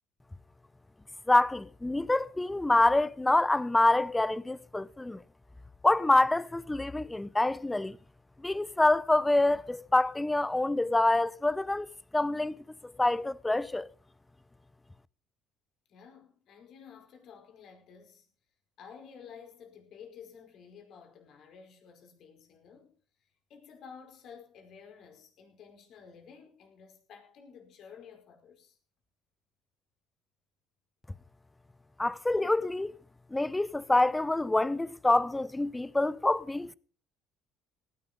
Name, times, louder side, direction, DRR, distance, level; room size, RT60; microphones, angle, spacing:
voice 1, 1.3-5.2 5.8-8.0 8.4-11.9 12.1-12.6 12.8-13.9 32.0-32.9 33.3-36.7, left 2 dB, 15° left, 0.9 m, -26 dB
voice 2, 15.9-18.3 18.8-22.9 23.2-28.8, left 6 dB, 60° left, 5.1 m, -52 dB
18.0 x 11.5 x 5.3 m
hypercardioid pair, 65°, 0 cm